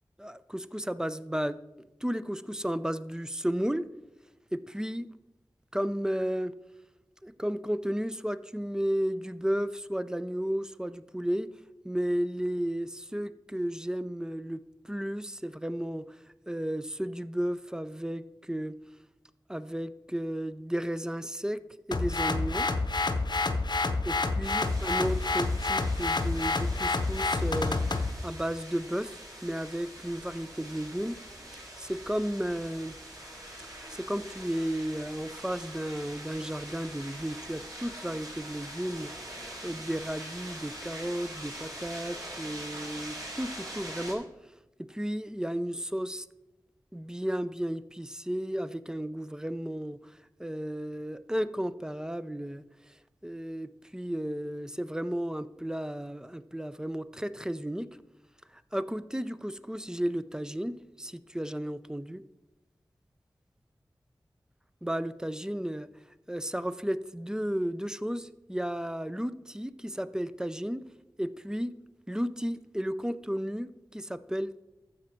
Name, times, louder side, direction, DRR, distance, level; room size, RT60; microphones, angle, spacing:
voice 1, 0.2-1.6 2.0-3.9 4.5-5.1 5.7-6.5 7.2-11.5 11.8-16.2 16.5-18.8 19.5-21.6 21.9-22.7 24.0-31.2 31.8-33.0 33.9-39.1 39.6-44.3 44.8-46.3 46.9-52.9 53.2-57.9 58.5-62.2 64.8-65.9 66.3-70.9 71.2-71.7 72.1-74.6, equal, 10° right, 13 dB, 0.5 m, -33 dB
sound 1, 21.9-28.1, left 3 dB, 65° left, 0.8 m, -28 dB
sound 2, 24.4-44.1, right 1 dB, 50° right, 4.3 m, -44 dB
12.5 x 7.4 x 4.5 m, 1.0 s
wide cardioid pair, 65°, 8 cm